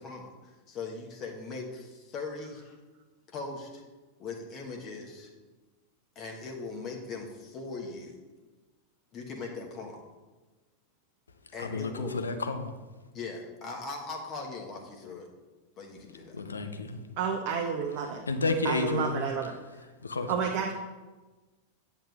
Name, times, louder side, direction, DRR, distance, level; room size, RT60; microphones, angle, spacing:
voice 1, 0.0-2.7 3.3-3.8 4.2-5.3 6.1-8.2 9.1-10.0 11.5-12.1 13.1-15.3 15.8-16.4, left 4 dB, 30° left, 0 dB, 1.0 m, -40 dB
voice 2, 11.6-12.7 16.3-17.0 18.3-19.2 20.0-20.3, left 3 dB, 75° left, 7 dB, 0.5 m, -31 dB
voice 3, 17.2-18.2 18.6-19.5 20.3-20.7, right 6 dB, 45° right, 1 dB, 0.6 m, -30 dB
8.8 x 7.0 x 2.3 m, 1.2 s
figure-of-eight pair, 90°, 0 cm